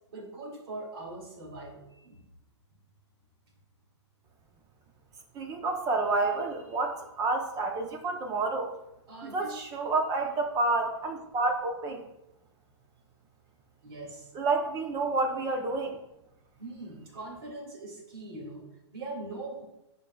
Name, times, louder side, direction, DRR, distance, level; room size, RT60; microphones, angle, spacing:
voice 1, 0.1-2.2 9.1-9.7 13.8-14.3 16.6-19.6, right 2 dB, 60° right, 0 dB, 2.2 m, -42 dB
voice 2, 5.3-8.7 9.2-12.0 14.3-16.0, right 3 dB, 25° right, 4 dB, 0.7 m, -29 dB
8.9 x 5.3 x 2.3 m, 0.91 s
hypercardioid pair, 125°, 15 cm